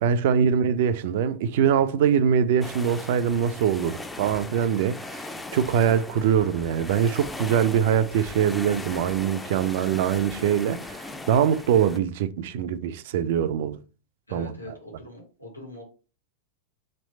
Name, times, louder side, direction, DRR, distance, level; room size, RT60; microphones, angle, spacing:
voice 1, 0.0-5.2 5.5-13.8 14.3-14.5, right 8 dB, 50° right, 0.4 m, -23 dB
sound 1, 2.6-12.0, left 2 dB, 10° left, 0.4 m, -39 dB
voice 2, 14.3-15.8, left 1 dB, 85° left, 1.4 m, -41 dB
3.3 x 3.0 x 4.1 m
figure-of-eight pair, 90°, 0 cm